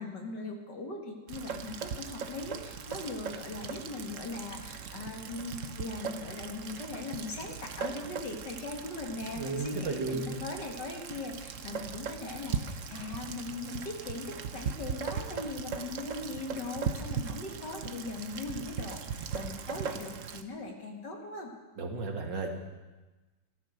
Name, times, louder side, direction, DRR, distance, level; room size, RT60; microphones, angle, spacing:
voice 1, 0.0-21.5, left 3 dB, 70° left, 2 dB, 2.7 m, -40 dB
Rain, 1.3-20.4, right 6 dB, 55° right, 1.0 m, -39 dB
voice 2, 9.3-10.4 21.8-22.5, right 3 dB, 80° right, 2 dB, 2.5 m, -34 dB
14.5 x 12.5 x 6.5 m, 1.2 s
omnidirectional pair, 1.9 m